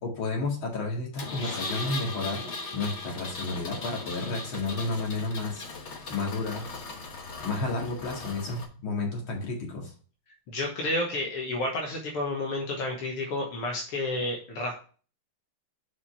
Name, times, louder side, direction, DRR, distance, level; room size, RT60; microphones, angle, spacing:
voice 1, 0.0-2.4 2.7-5.6 6.1-6.7 7.4-9.9, left 3 dB, 70° left, -1 dB, 2.8 m, -31 dB
Engine, 1.2-8.7, left 3 dB, 45° left, 1.0 m, -38 dB
voice 2, 10.5-14.7, left 2 dB, 85° left, 0 dB, 2.2 m, -31 dB
5.7 x 5.0 x 5.7 m, 0.40 s
omnidirectional pair, 2.4 m